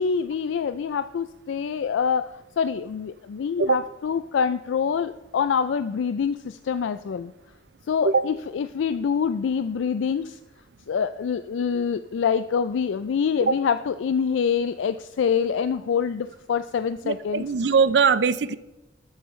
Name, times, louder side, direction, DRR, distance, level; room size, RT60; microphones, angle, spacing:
voice 1, 0.0-2.3 2.6-7.3 7.9-10.4 10.9-17.4, left 6 dB, 80° left, 11 dB, 0.3 m, -25 dB
voice 2, 17.0-18.6, right 5 dB, 65° right, 15 dB, 0.4 m, -21 dB
12.0 x 8.8 x 3.2 m, 1.0 s
head